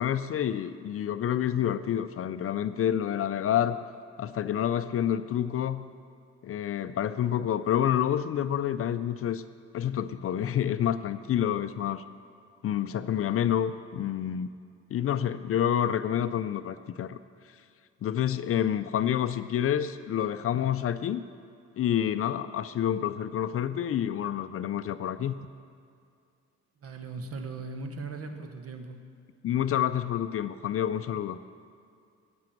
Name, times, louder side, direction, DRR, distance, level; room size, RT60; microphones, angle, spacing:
voice 1, 0.0-3.8 4.2-5.8 6.4-9.4 9.7-12.0 12.6-14.5 14.9-17.2 18.0-21.2 21.8-25.3 29.4-31.4, left 10 dB, 50° left, 12 dB, 0.4 m, -28 dB
voice 2, 26.8-29.0, right 3 dB, 50° right, 5 dB, 1.3 m, -38 dB
15.5 x 6.1 x 6.0 m, 2.3 s
cardioid pair, 90°, 30 cm